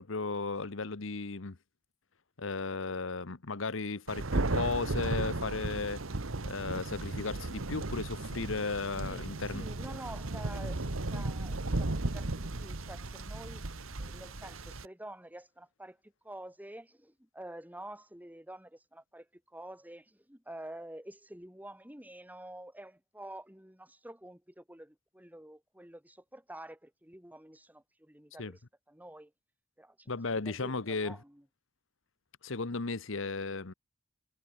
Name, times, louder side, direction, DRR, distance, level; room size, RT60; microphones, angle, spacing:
voice 1, 0.0-1.6 2.4-6.0 6.4-9.7 28.4-28.5 30.1-31.2 32.4-33.7, left 3 dB, 70° left, 1.2 m, -35 dB
Thunder, 4.1-14.8, right 2 dB, 80° right, 1.4 m, -35 dB
voice 2, 9.0-28.6 28.9-29.3 29.8-31.4, right 1 dB, 10° right, 4.4 m, -48 dB
head